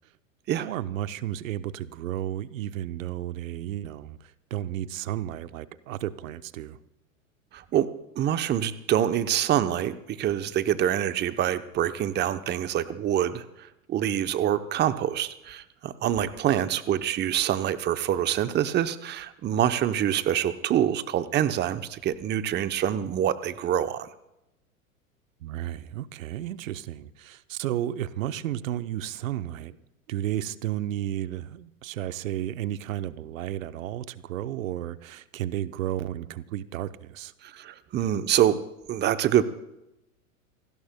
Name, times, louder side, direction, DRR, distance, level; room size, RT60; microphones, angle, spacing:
voice 1, 0.6-6.8 25.4-29.8 30.1-37.3, right 12 dB, 70° right, 0.9 m, -33 dB
voice 2, 7.5-24.1 37.4-38.6 38.9-39.4, right 11 dB, 25° right, 0.8 m, -26 dB
28.0 x 17.5 x 2.2 m
hypercardioid pair, 100°, 41 cm